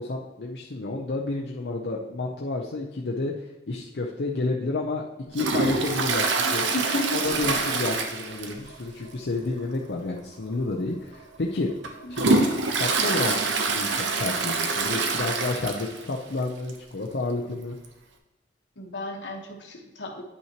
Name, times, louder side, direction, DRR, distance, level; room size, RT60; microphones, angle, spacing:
voice 1, 0.0-5.0 5.3-6.6 7.1-11.7 12.1-12.4 12.8-13.3 13.7-17.8, left 2 dB, 70° left, -2 dB, 0.7 m, -30 dB
Toilet flush, 5.3-8.8 9.1-9.2 9.6-9.7 10.5-10.6 11.2-16.1 16.4-16.5 16.7-16.8 17.8-17.9, right 3 dB, 85° right, 0.8 m, -25 dB
voice 2, 6.7-7.3 18.8-20.2, left 1 dB, 85° left, 2 dB, 1.3 m, -32 dB
9.6 x 5.6 x 3.0 m, 1.0 s
head